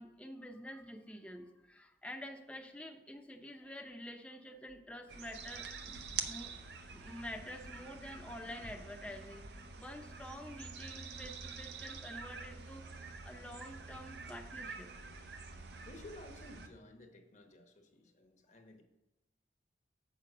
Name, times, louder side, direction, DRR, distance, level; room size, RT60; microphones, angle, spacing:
voice 1, 0.0-6.5 6.9-9.5 9.8-12.8 13.2-14.9, left 1 dB, 5° left, 3 dB, 0.7 m, -48 dB
sound 1, 5.1-16.7, right 5 dB, 75° right, 0.7 m, -46 dB
voice 2, 15.8-18.8, left 1 dB, 45° left, 4 dB, 1.0 m, -54 dB
7.6 x 5.1 x 4.9 m, 0.97 s
head